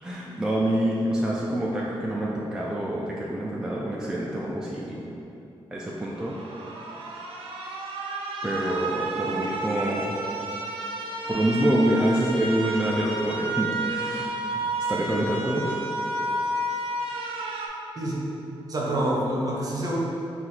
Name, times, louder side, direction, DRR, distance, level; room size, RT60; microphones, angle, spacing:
voice 1, 0.0-5.0 5.7-6.3 8.4-10.2 11.3-14.6 14.9-15.8, right 1 dB, 5° right, -4 dB, 0.3 m, -26 dB
sound 1, 6.1-17.7, right 2 dB, 80° right, 0.5 m, -31 dB
voice 2, 18.0-18.3 18.7-20.0, right 1 dB, 40° right, -3 dB, 0.7 m, -27 dB
4.0 x 2.4 x 4.1 m, 2.8 s
wide cardioid pair, 140°, 9 cm